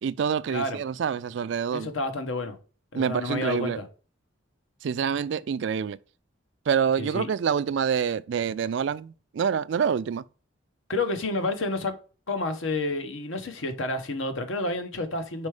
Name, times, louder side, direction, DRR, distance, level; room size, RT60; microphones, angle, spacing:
voice 1, 0.0-1.9 2.9-3.8 4.8-6.0 6.7-10.2, right 7 dB, 65° right, 0.3 m, -26 dB
voice 2, 1.7-2.6 2.9-3.9 7.0-7.3 10.9-11.9 12.3-15.5, left 2 dB, 80° left, 1.1 m, -30 dB
5.3 x 4.5 x 4.8 m
head